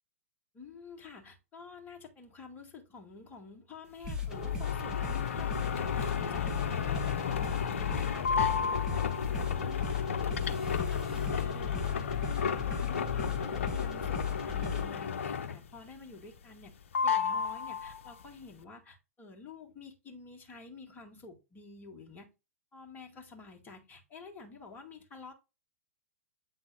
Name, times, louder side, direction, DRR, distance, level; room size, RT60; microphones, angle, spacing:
voice 1, 0.5-10.0 10.3-16.7 17.0-22.3 22.7-25.3, left 4 dB, 20° left, 2.2 m, -49 dB
sound 1, 4.0-14.9, left 6 dB, 5° right, 2.2 m, -35 dB
sound 2, 4.3-15.8 16.1-16.7 16.9-18.2, left 6 dB, 55° left, 0.7 m, -33 dB
8.3 x 4.0 x 3.8 m
figure-of-eight pair, 105°, 8 cm